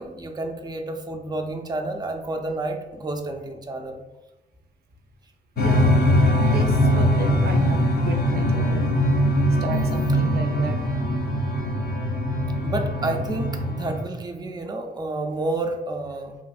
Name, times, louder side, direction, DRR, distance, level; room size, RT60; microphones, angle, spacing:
voice 1, 0.0-4.0 9.5-9.6 12.6-16.4, right 2 dB, 25° right, 3 dB, 0.5 m, -30 dB
sound 1, 5.6-14.0, equal, 70° left, 0.5 m, -21 dB
voice 2, 5.6-6.0 6.3-9.0 9.6-10.8, right 3 dB, 70° right, 4 dB, 0.5 m, -32 dB
3.0 x 2.5 x 2.4 m, 1.0 s
cardioid pair, 70°, 17 cm